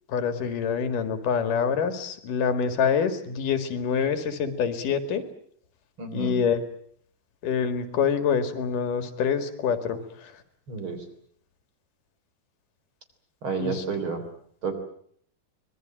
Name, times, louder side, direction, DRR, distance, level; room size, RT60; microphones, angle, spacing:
voice 1, 0.1-5.2 6.1-6.6 7.4-10.3 13.6-13.8, left 6 dB, 85° left, 9 dB, 3.6 m, -26 dB
voice 2, 6.0-6.4 10.7-11.0 13.4-14.2 14.6-14.8, right 5 dB, 40° right, 7 dB, 4.3 m, -30 dB
24.5 x 21.5 x 8.9 m, 0.62 s
omnidirectional pair, 3.6 m